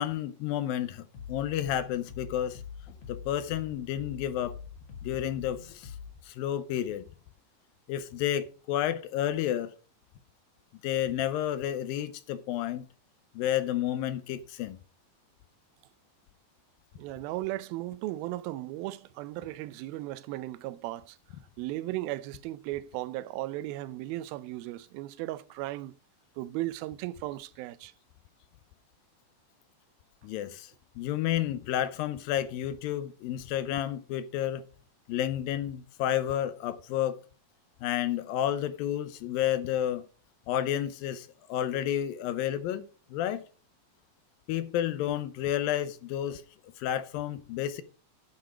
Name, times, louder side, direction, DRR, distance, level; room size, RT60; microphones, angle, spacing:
voice 1, 0.0-2.6 2.9-4.6 5.0-6.0 6.2-7.0 7.9-9.7 10.8-12.8 13.4-14.8 30.2-34.6 35.1-37.2 37.8-40.0 40.5-42.8 43.1-43.4 44.5-46.4 46.8-47.8, left 11 dB, 80° left, 2.4 m, -31 dB
sound 1, 1.1-6.1, left 6 dB, 55° left, 2.4 m, -44 dB
voice 2, 16.9-21.2 21.6-26.0 26.4-27.9, right 16 dB, 85° right, 2.4 m, -36 dB
9.9 x 7.7 x 4.9 m
omnidirectional pair, 4.3 m